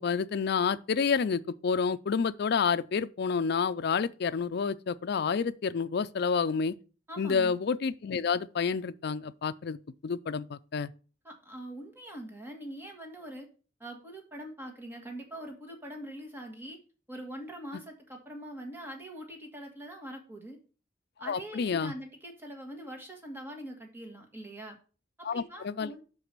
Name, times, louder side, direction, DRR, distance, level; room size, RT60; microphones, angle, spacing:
voice 1, 0.0-6.8 7.2-10.9 21.3-21.9 25.2-25.9, left 5 dB, 55° left, 0.4 m, -29 dB
voice 2, 7.1-7.6 11.2-13.5 13.8-16.8 17.1-20.6 21.2-24.8 25.2-26.0, right 1 dB, 10° right, 1.5 m, -43 dB
6.0 x 4.8 x 6.6 m
head